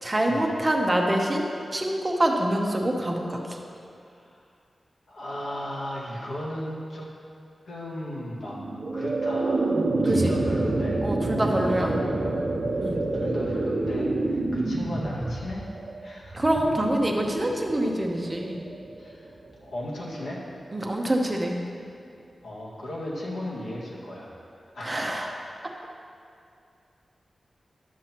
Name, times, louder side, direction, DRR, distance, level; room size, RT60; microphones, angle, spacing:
voice 1, 0.0-3.6 10.0-10.4 11.0-11.9 12.8-13.0 16.3-18.6 20.7-21.6 24.8-25.3, right 1 dB, 20° right, 1 dB, 0.8 m, -25 dB
voice 2, 4.0-4.4 5.1-7.1 7.7-8.6 8.9-11.0 11.3-12.4 12.7-15.7 16.0-16.4 19.0-19.3 19.6-20.4 22.4-25.7, left 1 dB, 75° left, -5 dB, 1.8 m, -36 dB
sound 1, 8.5-19.6, right 2 dB, 50° right, 0.7 m, -28 dB
11.5 x 7.5 x 3.0 m, 2.5 s
wide cardioid pair, 150°, 0 cm